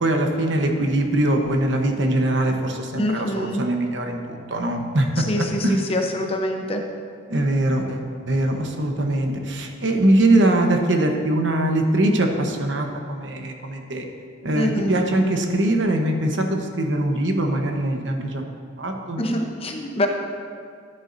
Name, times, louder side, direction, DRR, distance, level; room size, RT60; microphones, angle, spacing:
voice 1, 0.0-5.9 7.3-14.1 14.4-18.5 18.8-19.2, right 1 dB, 70° right, 3 dB, 1.0 m, -22 dB
voice 2, 3.0-3.6 5.3-6.8 14.5-14.9 19.2-20.1, left 1 dB, 30° left, 3 dB, 0.8 m, -25 dB
13.0 x 9.9 x 2.7 m, 2.1 s
head